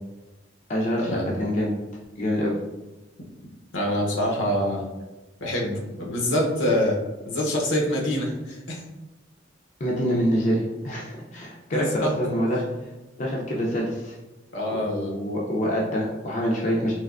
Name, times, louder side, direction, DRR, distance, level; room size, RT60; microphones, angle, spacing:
voice 1, 0.7-1.7 2.2-2.6 9.8-12.7 13.2-14.2 14.7-16.9, equal, 40° left, -3 dB, 0.5 m, -26 dB
voice 2, 3.7-4.8 5.4-7.0 7.2-8.8 11.7-12.1 14.5-15.1, equal, 80° left, -2 dB, 0.8 m, -25 dB
3.3 x 3.0 x 2.4 m, 1.1 s
head